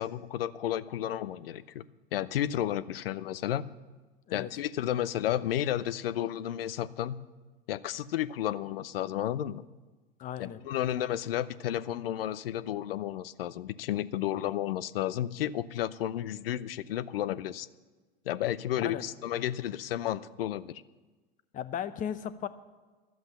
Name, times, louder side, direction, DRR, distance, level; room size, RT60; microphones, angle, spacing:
voice 1, 0.0-1.8 2.1-3.6 4.3-7.2 7.7-9.6 10.4-17.7 18.3-20.8, left 12 dB, 70° left, 16 dB, 0.6 m, -32 dB
voice 2, 10.2-10.6 18.8-19.0 21.5-22.5, left 9 dB, 25° left, 13 dB, 0.7 m, -36 dB
12.0 x 7.9 x 8.8 m, 1.3 s
hypercardioid pair, 100°, 30 cm